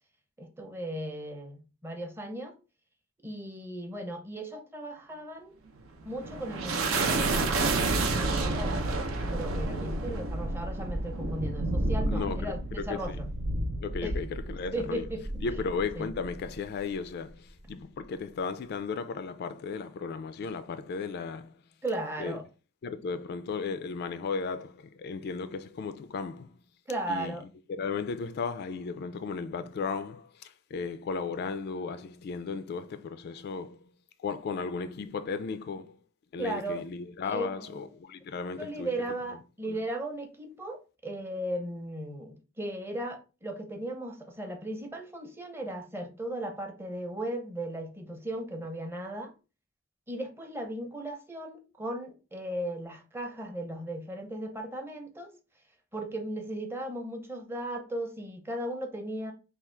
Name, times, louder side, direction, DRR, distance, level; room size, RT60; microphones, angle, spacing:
voice 1, 0.4-2.6 3.2-5.6 6.0-9.0 9.3-13.3 14.0-14.1 14.7-15.2 15.9-16.1 21.8-22.5 26.9-27.4 36.4-36.8 37.2-37.8 38.6-49.3 50.1-55.3 55.9-59.3, right 1 dB, 10° right, 0.6 m, -36 dB
sound 1, 5.8-16.5, right 2 dB, 80° right, 0.7 m, -30 dB
voice 2, 12.1-13.2 13.8-15.1 15.4-21.5 22.2-22.4 22.8-26.6 27.1-27.4 27.7-33.9 34.2-36.0 36.3-38.9 39.7-39.8, left 5 dB, 50° left, 0.3 m, -35 dB
3.5 x 2.3 x 4.3 m
head